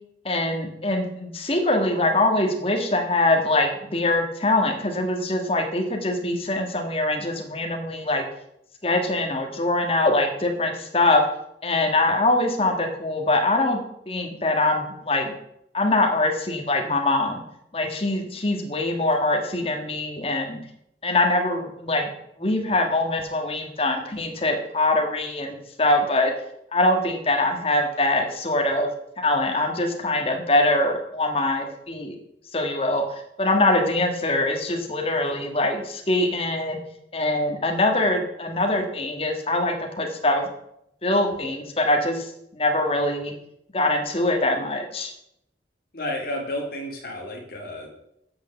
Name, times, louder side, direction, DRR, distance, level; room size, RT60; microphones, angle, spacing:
voice 1, 0.2-8.2 8.8-11.2 11.6-13.8 14.1-15.3 15.7-17.4 17.7-20.6 21.0-22.1 22.4-26.3 26.7-28.9 29.2-32.2 32.5-36.8 37.1-40.4 41.0-43.3 43.7-45.1, left 2 dB, 30° left, 3 dB, 1.5 m, -23 dB
voice 2, 45.9-47.9, left 1 dB, 55° left, 1 dB, 2.1 m, -31 dB
7.9 x 6.2 x 6.8 m, 0.77 s
head